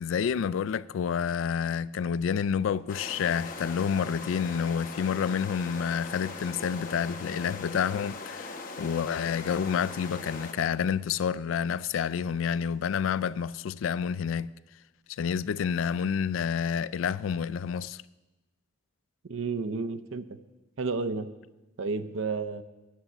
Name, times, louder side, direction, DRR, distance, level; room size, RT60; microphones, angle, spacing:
voice 1, 0.0-14.5 15.1-18.0, left 7 dB, 85° left, 0.3 m, -29 dB
sound 1, 2.9-10.5, left 3 dB, 45° left, 1.0 m, -40 dB
voice 2, 19.2-20.4 20.8-21.3 21.8-22.6, right 4 dB, 85° right, 0.6 m, -31 dB
10.5 x 7.7 x 7.2 m
head